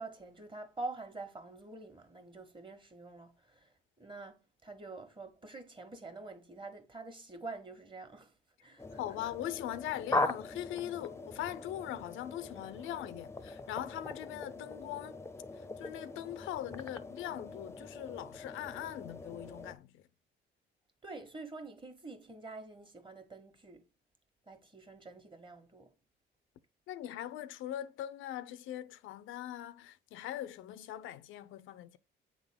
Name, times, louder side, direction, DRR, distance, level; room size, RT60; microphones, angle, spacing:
voice 1, 0.0-8.3 8.6-9.0 21.0-23.9 24.5-25.9, right 3 dB, 25° right, 1.6 m, -46 dB
sound 1, 8.8-19.7, left 2 dB, 15° left, 0.7 m, -40 dB
voice 2, 9.0-15.2 15.6-20.0 26.9-32.0, left 12 dB, 90° left, 0.6 m, -41 dB
8.4 x 3.7 x 3.6 m
cardioid pair, 90°, 20 cm